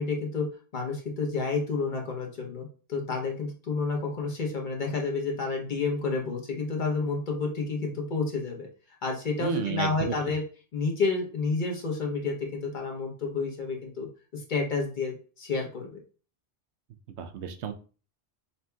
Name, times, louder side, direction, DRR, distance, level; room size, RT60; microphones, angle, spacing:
voice 1, 0.0-8.7 9.0-10.4 10.7-14.1 14.3-15.9, left 4 dB, 45° left, 1 dB, 1.0 m, -30 dB
voice 2, 9.4-10.1 17.2-17.7, right 7 dB, 75° right, 7 dB, 0.9 m, -32 dB
5.4 x 2.7 x 2.2 m, 0.37 s
omnidirectional pair, 1.2 m